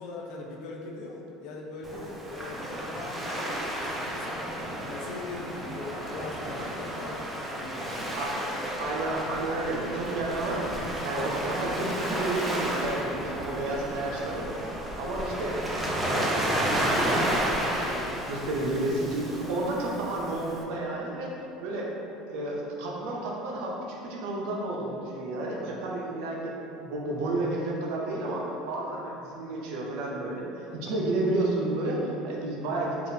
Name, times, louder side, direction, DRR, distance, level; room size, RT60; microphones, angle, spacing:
voice 1, 0.0-4.4 4.9-8.6 30.7-30.9, left 2 dB, 65° left, -1 dB, 0.5 m, -41 dB
Waves surf, 1.8-20.6, right 1 dB, 10° right, 0.4 m, -32 dB
voice 2, 8.8-14.5 15.0-15.6 16.0-16.2 16.8-21.3 21.6-21.9 22.3-32.9, right 2 dB, 75° right, -2 dB, 0.5 m, -31 dB
3.5 x 2.4 x 2.7 m, 2.9 s
supercardioid pair, 125°, 0 cm